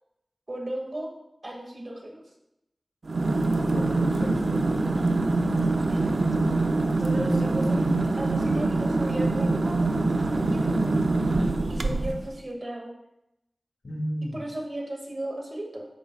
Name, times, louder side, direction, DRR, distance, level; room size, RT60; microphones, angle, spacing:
voice 1, 0.5-1.1 1.4-2.2 5.9-6.1 7.0-11.1 11.7-12.9 14.3-15.9, right 1 dB, 50° right, 0 dB, 2.2 m, -35 dB
sound 1, 3.1-12.3, right 2 dB, 70° right, 0.6 m, -24 dB
voice 2, 3.7-5.1 11.7-12.1 13.8-14.4, equal, 80° left, -3 dB, 2.7 m, -34 dB
10.5 x 8.1 x 2.5 m, 0.84 s
wide cardioid pair, 70°, 0 cm